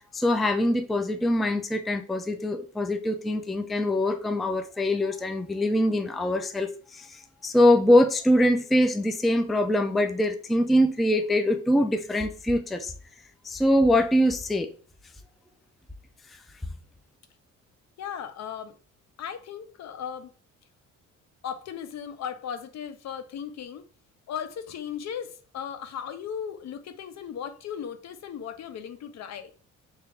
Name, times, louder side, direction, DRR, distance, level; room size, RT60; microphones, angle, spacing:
voice 1, 0.0-12.9 13.4-14.7, left 1 dB, ahead, 0.3 m, -23 dB
voice 2, 18.0-18.7 19.2-20.3 21.4-23.8 24.3-29.5, left 8 dB, 60° left, 0.6 m, -36 dB
3.4 x 2.9 x 3.2 m
cardioid pair, 90°, 30 cm